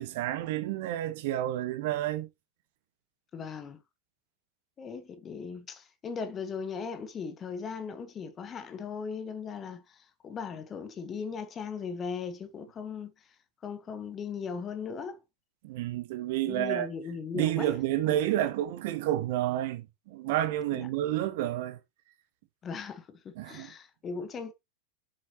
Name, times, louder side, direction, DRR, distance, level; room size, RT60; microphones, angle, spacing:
voice 1, 0.0-2.3 15.6-16.9 17.3-21.8 23.3-23.7, right 13 dB, 50° right, 1.5 m, -30 dB
voice 2, 3.3-3.8 4.8-13.1 13.6-15.2 16.5-17.7 18.1-18.2 20.7-20.9 22.6-24.5, left 5 dB, 25° left, 1.3 m, -38 dB
7.2 x 7.2 x 3.0 m
figure-of-eight pair, 90°, 0 cm